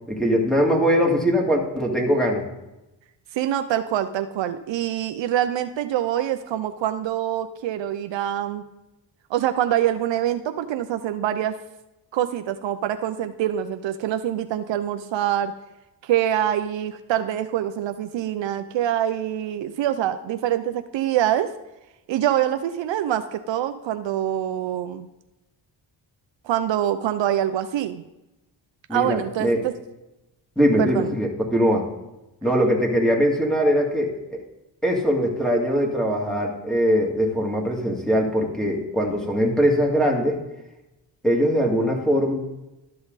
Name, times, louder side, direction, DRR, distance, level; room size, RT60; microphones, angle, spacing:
voice 1, 0.1-2.4 28.9-29.6 30.6-31.9 32.4-34.4 34.8-40.4 41.2-42.3, equal, ahead, -1 dB, 2.5 m, -21 dB
voice 2, 3.3-8.6 9.3-11.5 12.1-15.5 16.0-21.5 22.1-25.1 26.4-28.0 28.9-29.7 30.8-31.2, right 11 dB, 70° right, 9 dB, 0.7 m, -25 dB
13.0 x 5.7 x 4.1 m, 0.96 s
cardioid pair, 70°, 46 cm